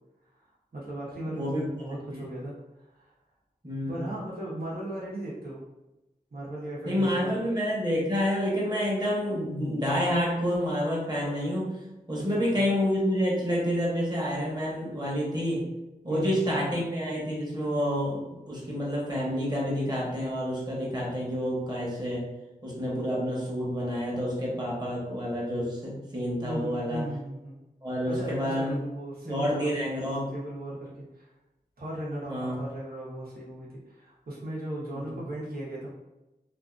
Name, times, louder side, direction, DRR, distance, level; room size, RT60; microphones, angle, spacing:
voice 1, 0.7-2.5 2.8-3.1 3.9-5.6 6.3-7.4 12.5-12.7 16.1-16.6 26.4-27.6 28.0-29.7 30.3-31.3 31.8-35.9, right 1 dB, 70° right, -7 dB, 1.1 m, -37 dB
voice 2, 1.2-1.7 2.1-2.3 3.6-4.0 6.8-11.7 12.1-15.6 16.0-22.3 22.6-27.0 27.8-28.8 29.2-30.3 32.3-32.6, equal, 25° right, -5 dB, 1.1 m, -28 dB
2.7 x 2.5 x 2.4 m, 1.0 s
wide cardioid pair, 65°, 16 cm